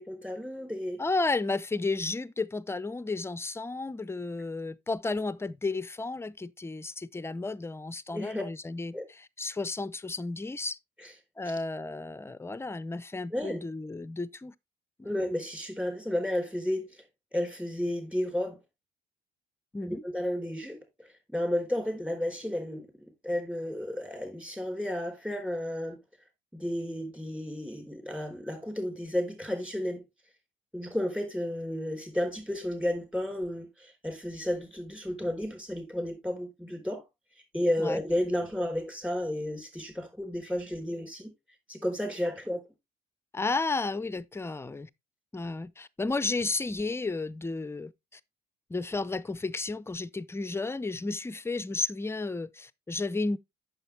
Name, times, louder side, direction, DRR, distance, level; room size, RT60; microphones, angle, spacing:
voice 1, 0.0-1.0 8.1-8.4 8.9-9.1 13.3-13.6 15.0-17.0 17.3-18.6 19.8-26.0 26.5-30.0 30.7-37.0 37.5-41.3 41.7-42.6, left 1 dB, 5° right, 4.0 m, -32 dB
voice 2, 1.0-10.8 11.4-14.5 15.0-15.1 19.7-20.0 37.8-38.0 43.3-44.9 45.3-48.2 48.7-53.4, left 3 dB, 15° left, 0.6 m, -33 dB
8.9 x 7.0 x 3.3 m
cardioid pair, 110°, 17 cm